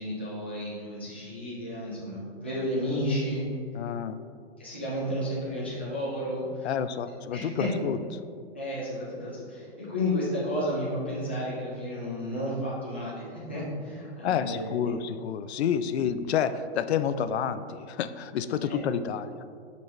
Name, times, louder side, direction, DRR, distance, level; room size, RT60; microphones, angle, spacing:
voice 1, 0.0-3.4 4.6-6.7 7.3-7.7 8.5-14.9 16.0-16.1 18.6-18.9, left 1 dB, 10° left, -9 dB, 0.3 m, -32 dB
voice 2, 3.7-4.2 6.6-8.0 14.2-19.4, left 8 dB, 85° left, 12 dB, 0.5 m, -29 dB
10.0 x 4.1 x 3.1 m, 2.3 s
hypercardioid pair, 180°, 32 cm